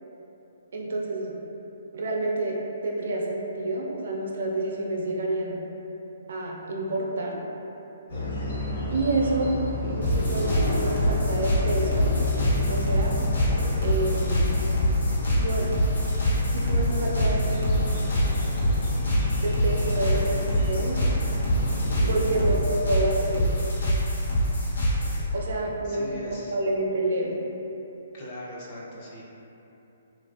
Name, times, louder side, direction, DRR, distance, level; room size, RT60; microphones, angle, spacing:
voice 1, 0.7-1.4 1.9-2.6 2.8-5.6 6.3-7.4 8.9-9.5 9.8-12.1 12.7-13.2 13.8-14.5 15.4-15.7 16.5-17.8 19.4-21.0 22.0-23.5 25.3-27.4, right 2 dB, 60° right, -2 dB, 0.4 m, -28 dB
sound 1, 8.1-22.5, left 3 dB, 55° left, 0.7 m, -29 dB
sound 2, 10.0-25.3, equal, 90° left, 0.8 m, -25 dB
voice 2, 25.8-26.5 28.1-29.2, left 1 dB, 30° left, -5 dB, 0.4 m, -39 dB
3.2 x 2.5 x 2.3 m, 3.0 s
hypercardioid pair, 175°, 0 cm